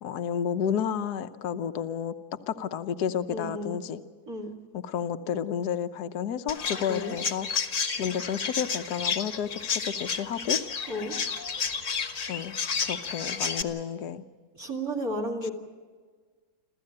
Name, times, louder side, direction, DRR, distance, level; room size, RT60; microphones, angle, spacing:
voice 1, 0.0-2.1 2.5-4.0 4.7-7.7 8.0-10.6 12.3-12.6 12.8-14.2, left 8 dB, 60° left, 9 dB, 1.3 m, -31 dB
voice 2, 3.3-3.8 4.3-4.5 6.9-7.2 10.9-11.1 14.5-15.5, equal, 45° right, -1 dB, 3.0 m, -32 dB
Chirp tweet, 6.5-13.6, left 6 dB, 45° left, 1.4 m, -31 dB
27.5 x 14.5 x 8.9 m, 1.5 s
omnidirectional pair, 2.2 m